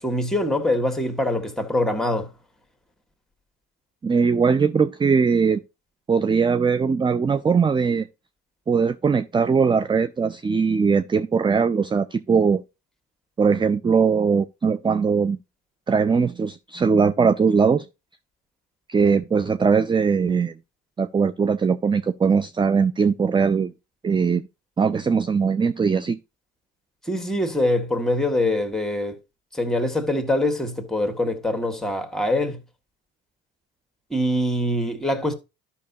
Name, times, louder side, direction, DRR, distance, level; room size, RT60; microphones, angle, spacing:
voice 1, 0.0-2.3 27.0-29.2 29.5-32.6 34.1-35.3, left 1 dB, ahead, 1.8 m, -24 dB
voice 2, 4.0-5.6 6.1-8.1 8.7-12.6 13.4-15.4 15.9-17.9 18.9-20.5 21.0-23.7 24.0-24.5 24.8-26.2, right 5 dB, 15° right, 0.4 m, -20 dB
12.0 x 5.8 x 2.7 m
hypercardioid pair, 65°, 33 cm